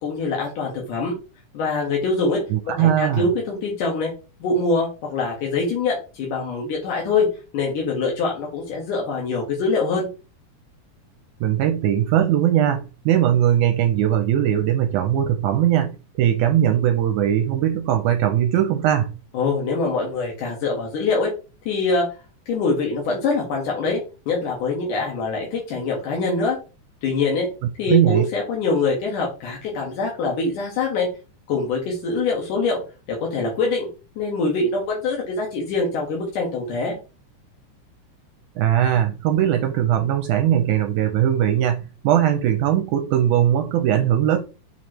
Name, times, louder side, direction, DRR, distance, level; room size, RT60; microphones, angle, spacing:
voice 1, 0.0-1.1 1.5-2.4 2.8-4.1 4.4-7.3 7.5-10.1 19.3-21.3 21.7-22.1 22.5-26.6 27.0-27.5 27.8-31.1 31.5-32.8 33.1-33.9 34.2-37.0, left 3 dB, 80° left, 3.1 m, -24 dB
voice 2, 2.5-3.3 11.4-19.1 27.9-28.2 38.6-44.4, right 10 dB, 80° right, 2.0 m, -20 dB
7.2 x 3.1 x 4.3 m
omnidirectional pair, 3.6 m